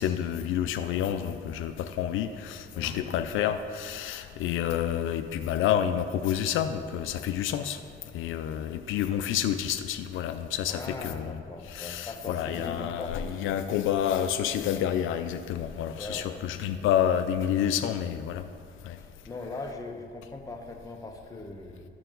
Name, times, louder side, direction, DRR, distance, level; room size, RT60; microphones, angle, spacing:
voice 1, 0.0-7.8 8.1-11.4 11.7-18.4 18.9-19.0, left 10 dB, 85° left, 9 dB, 0.4 m, -29 dB
voice 2, 2.7-3.1 10.7-13.5 16.0-16.6 19.0-21.8, left 2 dB, 15° left, 1 dB, 1.1 m, -40 dB
13.5 x 4.6 x 3.8 m, 2.2 s
cardioid pair, 90°, 20 cm